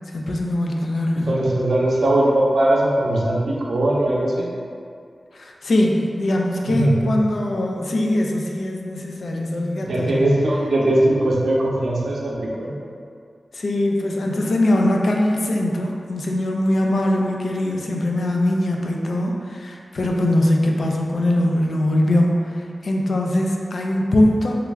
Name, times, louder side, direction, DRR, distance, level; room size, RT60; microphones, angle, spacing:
voice 1, 0.1-1.4 5.3-10.2 13.5-24.5, left 1 dB, 70° left, 0 dB, 0.3 m, -21 dB
voice 2, 1.1-4.5 6.7-7.1 9.8-12.7, right 1 dB, 75° right, -4 dB, 0.5 m, -20 dB
3.1 x 2.4 x 3.4 m, 2.3 s
wide cardioid pair, 120°, 0 cm